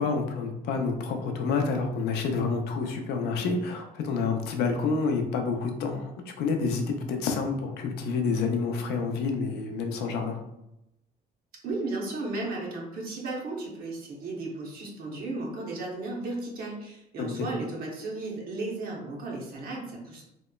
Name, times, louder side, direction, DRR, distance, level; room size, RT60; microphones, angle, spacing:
voice 1, 0.0-6.1 6.4-10.4 17.2-17.5, left 4 dB, 75° left, 4 dB, 0.4 m, -28 dB
voice 2, 11.6-20.3, right 2 dB, 60° right, -2 dB, 0.7 m, -35 dB
2.8 x 2.0 x 2.2 m, 0.87 s
cardioid pair, 110°, 17 cm